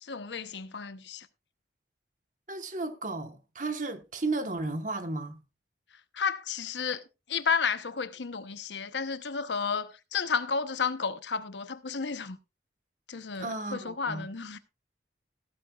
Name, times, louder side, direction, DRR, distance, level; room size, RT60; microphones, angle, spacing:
voice 1, 0.0-1.3 6.1-7.0 7.3-12.4 13.1-14.6, left 5 dB, 75° left, 0.9 m, -32 dB
voice 2, 2.5-5.4 13.4-14.3, right 2 dB, 45° right, 1.2 m, -34 dB
15.0 x 12.5 x 2.4 m
head